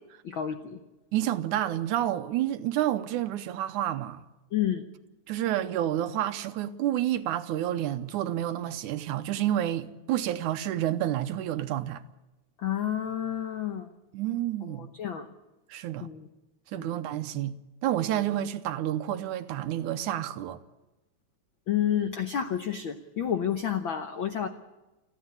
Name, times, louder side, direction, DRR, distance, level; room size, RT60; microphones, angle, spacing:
voice 1, 0.2-0.8 4.5-4.8 12.6-13.9 14.8-15.3 16.0-16.3 16.7-17.0 18.1-18.2 21.7-24.5, left 9 dB, 80° left, 1.1 m, -30 dB
voice 2, 1.1-4.2 5.3-12.0 14.1-14.9 15.7-16.1 16.7-20.6, right 12 dB, 80° right, 2.2 m, -29 dB
29.0 x 10.0 x 9.7 m
omnidirectional pair, 3.6 m